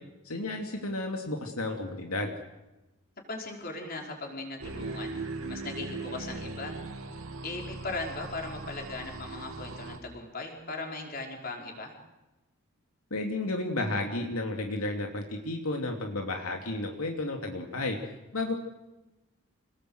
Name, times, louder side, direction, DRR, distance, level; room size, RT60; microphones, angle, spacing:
voice 1, 0.2-2.3 13.1-18.5, left 2 dB, 80° left, 2 dB, 2.8 m, -32 dB
voice 2, 3.3-5.2 5.5-6.8 7.4-11.9, left 3 dB, 40° left, 1 dB, 5.2 m, -38 dB
sound 1, 4.6-10.0, right 3 dB, 75° right, 2.7 m, -39 dB
27.0 x 20.0 x 8.0 m, 1.0 s
head